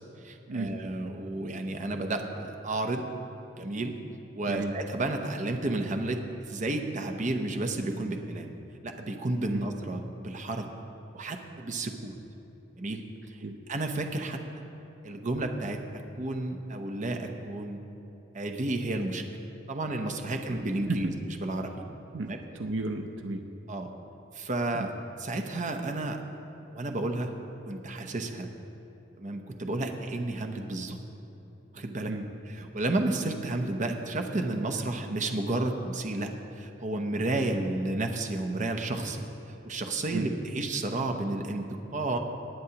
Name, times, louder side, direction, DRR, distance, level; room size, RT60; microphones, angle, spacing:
voice 1, 0.2-3.1 3.6-4.0 4.3-8.5 8.8-10.7 11.1-12.2 12.8-13.0 13.3-13.4 13.7-14.4 15.0-15.8 16.2-17.8 18.3-19.4 19.7-21.8 22.3-22.4 23.7-23.9 24.3-24.9 25.2-26.2 26.7-27.3 27.6-28.5 29.2-31.0 31.7-32.1 32.5-36.3 36.6-42.2, right 2 dB, 40° right, 4 dB, 0.8 m, -32 dB
voice 2, 22.1-23.5 24.7-24.9 32.1-32.2 40.1-40.3, right 2 dB, 75° right, 5 dB, 0.6 m, -33 dB
19.0 x 9.1 x 2.9 m, 3.0 s
head